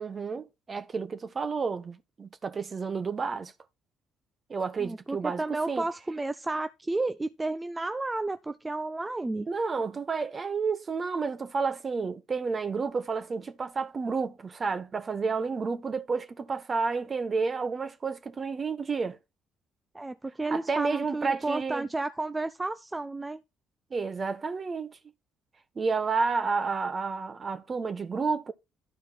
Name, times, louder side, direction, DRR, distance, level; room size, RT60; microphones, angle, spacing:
voice 1, 0.0-3.5 4.5-5.8 9.5-19.2 20.5-21.9 23.9-25.0 25.7-28.5, right 4 dB, 40° right, 1.4 m, -30 dB
voice 2, 4.8-9.5 19.9-23.4, right 2 dB, 20° right, 0.6 m, -32 dB
12.5 x 4.6 x 4.3 m
hypercardioid pair, 45°, 0 cm